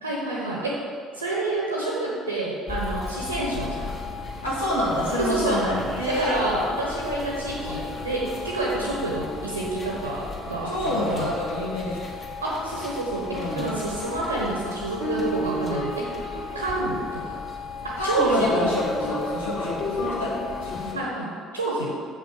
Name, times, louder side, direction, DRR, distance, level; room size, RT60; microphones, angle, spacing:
voice 1, 0.0-0.8 1.1-3.9 5.2-5.6 6.1-10.7 11.0-11.3 12.4-16.1 16.5-17.4 17.8-18.5 20.9-21.9, right 2 dB, 85° right, -3 dB, 1.1 m, -28 dB
sound 1, 2.7-20.9, left 2 dB, 35° left, 2.3 m, -34 dB
voice 2, 4.4-6.3 10.6-12.0 13.3-13.8 18.0-20.9, left 1 dB, 80° left, -6 dB, 2.2 m, -27 dB
7.4 x 6.0 x 7.4 m, 2.1 s
figure-of-eight pair, 55°, 0 cm